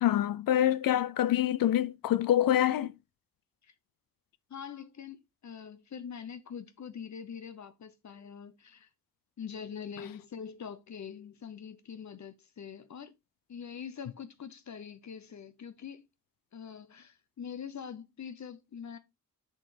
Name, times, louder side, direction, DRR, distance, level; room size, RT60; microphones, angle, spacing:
voice 1, 0.0-2.9, left 12 dB, 90° left, 0.5 m, -26 dB
voice 2, 4.5-8.9 9.4-13.1 13.5-16.1 16.5-19.0, left 7 dB, 55° left, 0.9 m, -44 dB
6.4 x 6.2 x 3.3 m
cardioid pair, 75°, 33 cm